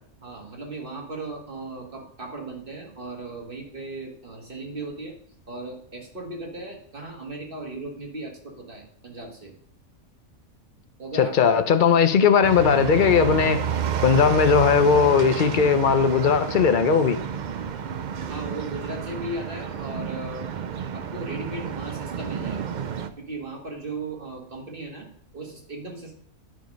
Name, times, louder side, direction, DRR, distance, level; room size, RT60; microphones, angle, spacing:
voice 1, 0.2-5.1 5.5-9.5 11.0-11.5 11.9-12.3 18.3-20.5 20.9-22.7 23.2-25.1 25.3-26.2, right 2 dB, 40° right, 1 dB, 2.0 m, -37 dB
voice 2, 11.2-13.6 14.0-17.2, left 6 dB, 45° left, 9 dB, 0.7 m, -18 dB
sound 1, 12.4-23.1, right 8 dB, 65° right, 0.4 m, -30 dB
9.9 x 5.1 x 5.2 m, 0.63 s
omnidirectional pair, 1.4 m